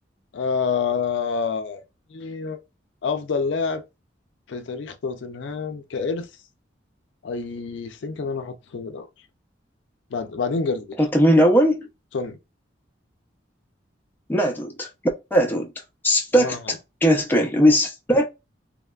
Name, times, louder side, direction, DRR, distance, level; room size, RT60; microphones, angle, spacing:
voice 1, 0.3-1.8 2.1-2.6 3.0-3.8 4.5-6.3 7.2-9.1 10.1-11.0 12.1-12.4 16.4-16.7, left 5 dB, 75° left, 0.4 m, -27 dB
voice 2, 11.0-11.9 14.3-14.9 15.3-15.7 16.0-16.6 17.0-18.3, equal, 10° left, 0.4 m, -18 dB
3.1 x 2.1 x 2.2 m
head